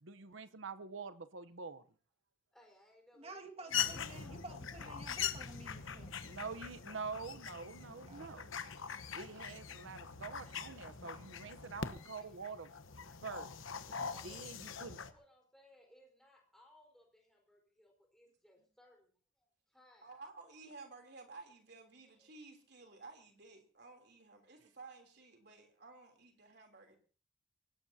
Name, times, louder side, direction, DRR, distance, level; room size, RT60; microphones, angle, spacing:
voice 1, 0.0-1.8 6.2-8.6 9.1-12.7 13.2-13.5 14.2-15.0, right 4 dB, 70° right, 0.9 m, -46 dB
voice 2, 2.5-3.7 4.0-4.3 4.7-4.9 11.8-12.7 13.9-19.1 19.4-20.1 22.0-22.3, left 1 dB, ahead, 4.4 m, -65 dB
voice 3, 3.1-6.2 8.1-8.4, right 2 dB, 30° right, 1.9 m, -52 dB
sound 1, 3.7-15.1, left 7 dB, 80° left, 1.1 m, -42 dB
voice 4, 20.0-26.9, right 3 dB, 55° right, 3.3 m, -55 dB
24.0 x 18.0 x 2.8 m
head